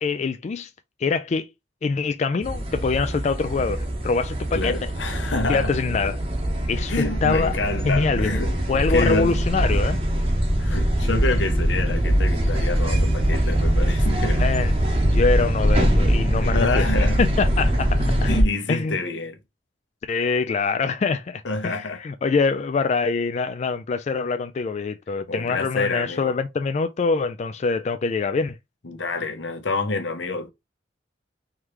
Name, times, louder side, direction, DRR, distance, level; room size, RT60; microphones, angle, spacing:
voice 1, 0.0-0.7 1.0-1.5 1.8-4.9 5.5-6.2 6.7-7.6 7.8-8.4 8.7-10.0 14.3-14.7 15.1-16.9 17.2-18.3 18.7-19.0 20.1-28.6, left 4 dB, 40° left, 0.3 m, -24 dB
sound 1, 2.4-18.4, equal, 30° right, 0.9 m, -22 dB
voice 2, 4.5-5.7 6.9-8.5 8.9-9.4 10.6-14.4 16.4-17.2 18.3-19.4 21.4-22.0 25.3-26.4 28.8-30.5, left 3 dB, 85° left, 0.9 m, -27 dB
3.6 x 3.2 x 2.9 m
head